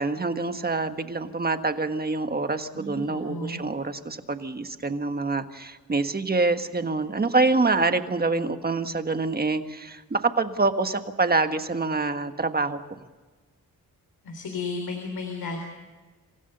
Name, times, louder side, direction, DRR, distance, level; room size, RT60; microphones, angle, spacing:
voice 1, 0.0-12.8, right 3 dB, 25° right, 8 dB, 1.5 m, -26 dB
voice 2, 2.7-3.6 14.2-15.6, left 3 dB, 80° left, 3 dB, 3.8 m, -33 dB
27.5 x 16.0 x 6.8 m, 1.3 s
cardioid pair, 95°, 36 cm